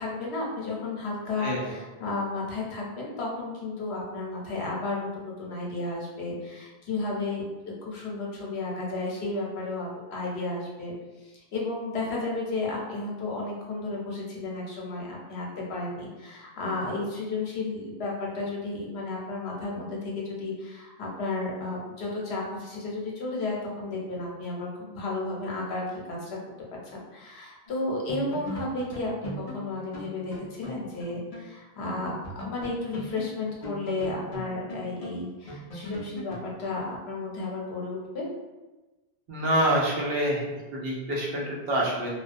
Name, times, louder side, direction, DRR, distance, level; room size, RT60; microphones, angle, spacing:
voice 1, 0.0-10.9 11.2-26.4 26.8-38.3, left 2 dB, 75° left, -3 dB, 0.9 m, -33 dB
sound 1, 27.7-27.8 28.1-31.5 31.8-31.9 32.2-36.5, equal, 50° left, 0.4 m, -39 dB
voice 2, 39.3-40.4 40.7-42.2, right 1 dB, 65° right, -4 dB, 0.8 m, -26 dB
2.3 x 2.1 x 2.5 m, 1.1 s
omnidirectional pair, 1.1 m